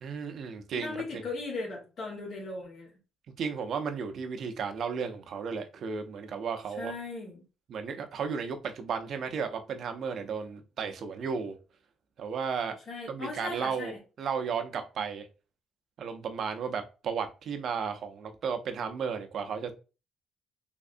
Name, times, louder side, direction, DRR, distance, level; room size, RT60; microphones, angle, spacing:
voice 1, 0.0-1.2 3.4-7.0 7.7-11.6 12.2-12.8 13.1-15.3 16.0-19.7, right 6 dB, 60° right, 0.6 m, -34 dB
voice 2, 0.7-2.9 6.7-7.4 12.9-14.0, left 3 dB, 60° left, 1.2 m, -38 dB
3.6 x 3.2 x 2.5 m
cardioid pair, 95°, 0 cm